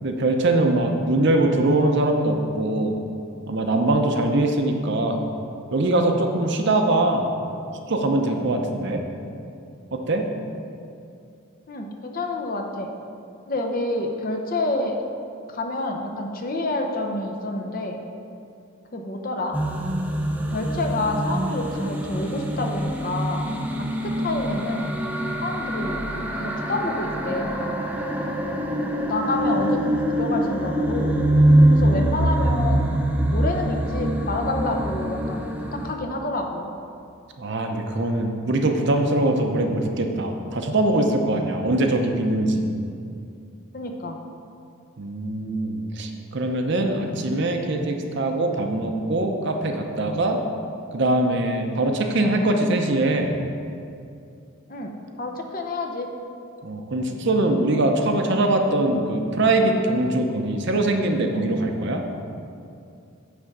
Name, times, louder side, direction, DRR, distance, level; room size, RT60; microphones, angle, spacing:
voice 1, 0.0-3.0 3.5-5.2 5.7-7.3 7.9-9.0 9.9-10.3 37.4-42.7 45.0-50.4 50.9-53.3 56.6-62.0, right 2 dB, 55° right, 4 dB, 0.7 m, -22 dB
voice 2, 11.7-12.9 13.5-15.0 15.5-18.0 18.9-19.6 20.5-23.4 23.8-24.9 25.4-27.8 29.0-31.2 31.7-32.9 33.3-36.7 43.7-44.2 54.7-56.1, left 2 dB, 40° left, 3 dB, 0.7 m, -28 dB
sound 1, 19.5-35.9, right 1 dB, 5° right, 0.5 m, -24 dB
9.4 x 3.7 x 6.7 m, 2.5 s
head